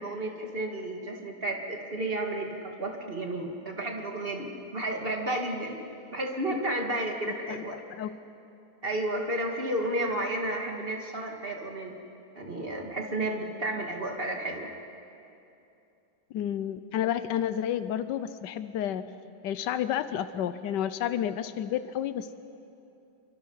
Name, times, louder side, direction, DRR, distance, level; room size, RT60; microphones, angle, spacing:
voice 1, 0.0-5.8 6.1-7.8 8.8-12.0 12.4-14.7, right 1 dB, 35° right, 2 dB, 2.3 m, -32 dB
voice 2, 16.3-19.0 19.4-22.4, left 10 dB, 90° left, 12 dB, 1.4 m, -30 dB
27.5 x 24.5 x 5.6 m, 2.7 s
omnidirectional pair, 1.8 m